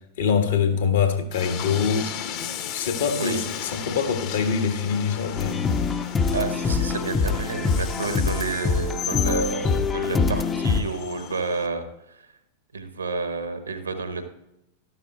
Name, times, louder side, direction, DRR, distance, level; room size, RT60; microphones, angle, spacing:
voice 1, 0.2-2.1 2.7-5.6, left 6 dB, 65° left, 6 dB, 1.4 m, -24 dB
Train, 1.3-11.7, left 9 dB, 45° left, 1.0 m, -35 dB
voice 2, 3.1-3.4 6.3-12.3 12.7-14.2, right 4 dB, 80° right, 8 dB, 1.3 m, -30 dB
sound 1, 5.4-10.8, left 5 dB, 15° left, 0.6 m, -24 dB
13.0 x 11.5 x 2.4 m, 0.86 s
figure-of-eight pair, 90°, 0 cm